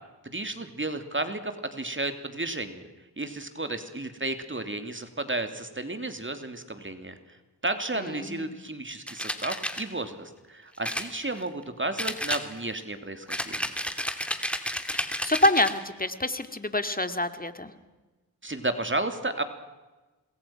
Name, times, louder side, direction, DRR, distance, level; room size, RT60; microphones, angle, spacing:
voice 1, 0.2-2.9 3.2-7.4 7.6-13.7 18.4-19.4, right 2 dB, 30° right, 8 dB, 3.1 m, -33 dB
voice 2, 7.9-8.5 14.9-17.7, left 1 dB, 20° left, 9 dB, 2.4 m, -27 dB
sound 1, 9.1-9.8 10.8-11.6 12.0-12.8 13.3-15.8, equal, 5° left, 3.0 m, -32 dB
27.5 x 21.0 x 6.0 m, 1.2 s
cardioid pair, 45°, 41 cm